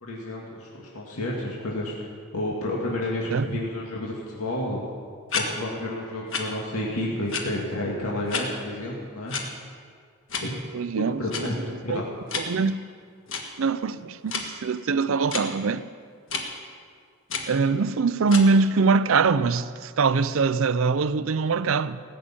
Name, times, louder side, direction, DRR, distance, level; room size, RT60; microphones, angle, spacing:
voice 1, 0.0-2.0 2.3-4.8 5.3-9.4 10.4-10.6 11.0-11.5 11.8-12.0, left 1 dB, 80° left, 2.1 m, -30 dB
voice 2, 3.3-3.6 10.7-12.0 12.3-12.8 13.6-15.9 17.5-22.0, right 4 dB, 65° right, 0.5 m, -23 dB
sound 1, 5.3-5.5 6.3-6.4 7.3-7.4 8.3-8.4 9.3-9.4 10.3-10.4 11.3-11.4 12.3-12.4 13.3-13.4 14.3-14.5 15.3-15.4 16.3-16.4 17.3-17.5 18.3-18.5, left 5 dB, 60° left, 1.5 m, -29 dB
19.0 x 6.6 x 8.5 m
head